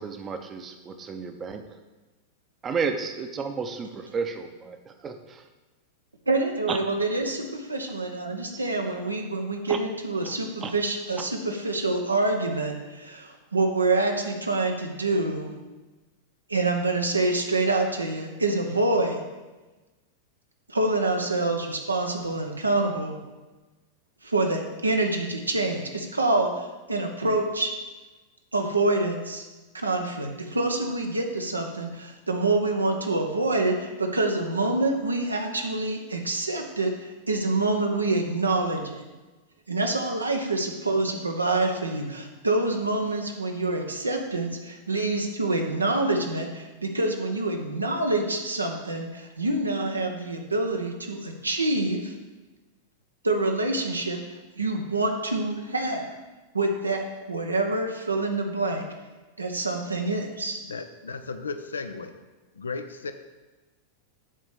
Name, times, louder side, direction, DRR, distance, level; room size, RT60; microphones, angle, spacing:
voice 1, 0.0-1.6 2.6-4.8 5.0-5.4 6.7-6.8 9.7-9.8 10.6-10.7, right 5 dB, 25° right, 7 dB, 0.8 m, -32 dB
voice 2, 6.3-15.6 16.5-19.2 20.7-23.2 24.2-27.7 28.5-29.5 29.7-39.0 39.7-52.1 53.2-56.1 56.5-58.9 59.4-60.6, right 2 dB, 80° right, 3 dB, 1.0 m, -26 dB
voice 3, 60.6-62.2 62.6-63.1, left 4 dB, 70° left, 9 dB, 0.5 m, -35 dB
7.7 x 4.1 x 6.6 m, 1.2 s
figure-of-eight pair, 90°, 0 cm